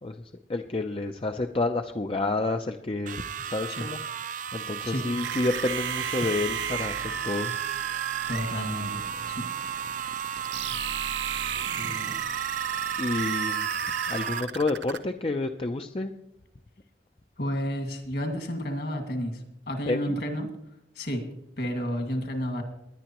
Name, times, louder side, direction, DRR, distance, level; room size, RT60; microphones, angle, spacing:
voice 1, 0.5-4.0 4.5-7.5 11.6-12.2 13.0-13.7 14.1-16.1 19.9-20.0, left 2 dB, 30° left, 5 dB, 0.5 m, -29 dB
sound 1, 3.1-14.4, right 8 dB, 45° right, 0.4 m, -34 dB
sound 2, 5.2-15.0, right 8 dB, 80° right, 0.8 m, -34 dB
voice 2, 8.3-9.5 11.8-12.1 13.3-13.5 17.4-20.5 21.0-21.3 21.6-22.6, equal, 60° left, 4 dB, 2.1 m, -31 dB
20.0 x 10.5 x 3.0 m, 0.82 s
head